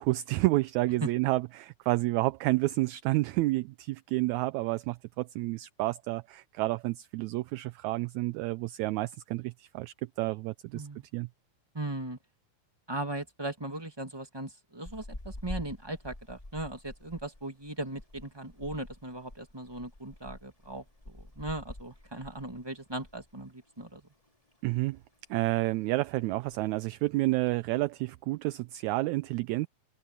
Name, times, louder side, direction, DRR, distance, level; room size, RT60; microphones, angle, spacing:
voice 1, 0.0-10.9 11.1-11.3 24.6-25.0 25.3-29.7, right 20 dB, 80° right, 1.8 m, -30 dB
voice 2, 10.7-11.0 11.7-12.2 12.9-24.0, right 2 dB, 10° right, 1.2 m, -38 dB
sound 1, 14.9-23.4 23.6-23.8 24.2-25.1 25.4-25.8 26.0-26.1 26.3-26.8 27.3-27.8, left 1 dB, 10° left, 2.2 m, -47 dB
open air
omnidirectional pair, 3.6 m